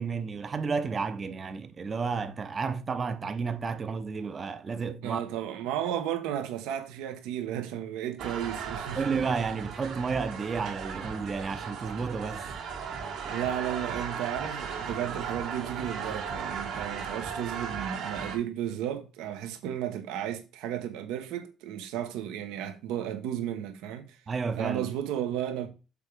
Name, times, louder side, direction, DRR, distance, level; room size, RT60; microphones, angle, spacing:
voice 1, 0.0-5.2 9.0-12.5 24.3-24.9, right 5 dB, 35° right, 0.7 m, -31 dB
voice 2, 5.0-9.2 13.2-24.2 24.6-25.7, right 10 dB, 90° right, 1.2 m, -34 dB
sound 1, 8.2-18.4, right 6 dB, 70° right, 2.2 m, -36 dB
6.8 x 3.5 x 5.1 m
cardioid pair, 95°, 0 cm